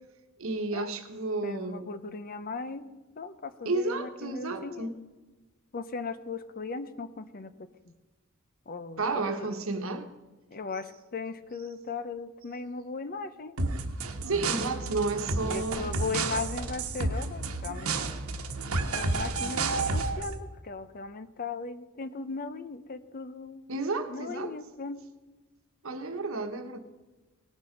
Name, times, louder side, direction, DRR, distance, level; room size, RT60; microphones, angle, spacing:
voice 1, 0.4-1.9 3.6-5.0 9.0-10.1 14.2-15.9 23.7-24.5 25.8-26.8, right 3 dB, 70° right, 7 dB, 1.2 m, -32 dB
voice 2, 1.4-2.9 3.2-4.9 5.7-7.9 8.7-9.0 9.3-9.6 10.5-13.6 14.3-14.5 15.4-17.9 18.9-23.6 24.1-25.0, left 4 dB, 45° left, 12 dB, 0.7 m, -38 dB
sound 1, 13.6-20.3, right 3 dB, 85° right, 1.2 m, -31 dB
18.5 x 7.3 x 5.1 m, 1.2 s
head